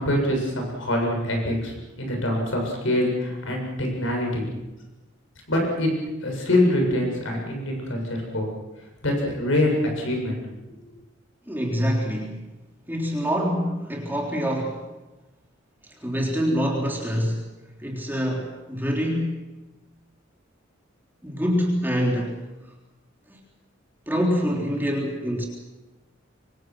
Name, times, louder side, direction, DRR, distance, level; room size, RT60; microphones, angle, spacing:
voice 1, 0.0-4.4 5.5-5.9 6.2-8.5 9.0-10.4 10.7-10.8, left 1 dB, 75° left, 1 dB, 7.5 m, -24 dB
voice 2, 11.5-12.4 12.9-14.8 16.0-17.4 17.8-19.5 21.2-22.4 23.3-23.4 24.1-25.5, equal, 10° right, -1 dB, 3.6 m, -25 dB
26.5 x 25.0 x 6.3 m, 1.1 s
head